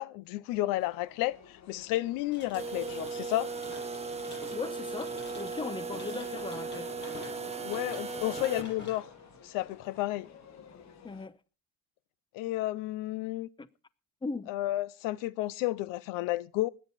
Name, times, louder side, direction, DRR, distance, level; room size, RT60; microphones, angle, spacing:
voice 1, 0.0-3.5 7.6-9.1 9.4-10.3 12.3-13.5 14.5-16.7, left 16 dB, 85° left, 0.6 m, -32 dB
sound 1, 0.7-11.3, left 7 dB, 55° left, 1.5 m, -54 dB
sound 2, 2.3-11.0, left 2 dB, 35° left, 7.8 m, -48 dB
sound 3, 2.5-8.6, right 4 dB, 20° right, 1.0 m, -37 dB
voice 2, 4.5-6.9 11.0-11.4 13.6-13.7 14.2-14.5, left 3 dB, 15° left, 0.9 m, -38 dB
20.5 x 9.4 x 4.1 m
cardioid pair, 95°, 32 cm